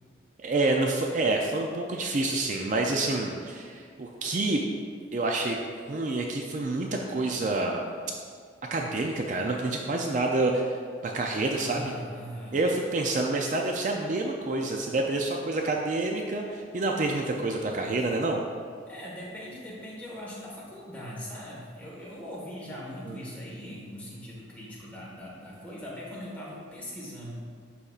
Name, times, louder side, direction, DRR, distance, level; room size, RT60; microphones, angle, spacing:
voice 1, 0.4-4.6 5.1-5.6 5.9-7.9 8.7-10.8 11.0-11.9 12.5-18.4 23.1-23.2, right 2 dB, 40° right, 1 dB, 0.4 m, -28 dB
voice 2, 11.5-12.6 13.3-13.5 18.9-27.3, equal, 10° left, -6 dB, 1.4 m, -41 dB
11.5 x 4.2 x 2.4 m, 2.1 s
head